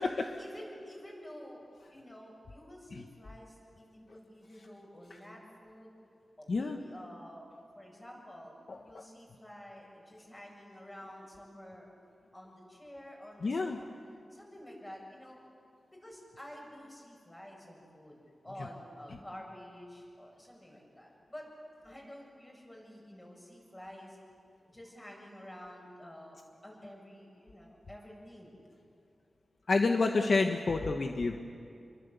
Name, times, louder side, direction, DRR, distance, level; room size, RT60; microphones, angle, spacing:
voice 1, 0.4-1.6 1.9-5.9 6.4-7.5 7.7-8.5 8.8-11.9 12.3-13.7 14.3-15.4 16.0-18.2 18.4-21.5 21.8-24.2 24.7-28.5 30.1-30.2, equal, 20° left, -1 dB, 7.9 m, -50 dB
voice 2, 6.5-6.8 8.7-9.0 13.4-13.8 29.7-31.4, left 3 dB, 55° left, 4 dB, 1.3 m, -29 dB
28.0 x 23.5 x 8.4 m, 2.6 s
wide cardioid pair, 120°, 0 cm